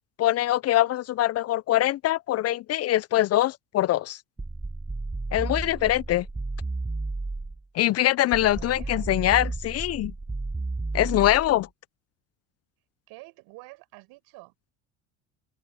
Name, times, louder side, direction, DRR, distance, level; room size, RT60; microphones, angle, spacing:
voice 1, 0.2-4.2 5.3-6.2 7.7-10.1 10.9-11.7, left 14 dB, 40° left, 0.4 m, -23 dB
sound 1, 4.4-7.6 8.3-11.6, right 3 dB, 10° right, 0.5 m, -32 dB
voice 2, 5.4-6.0 8.3-9.1 13.1-14.7, right 24 dB, 75° right, 5.5 m, -48 dB
supercardioid pair, 85°, 38 cm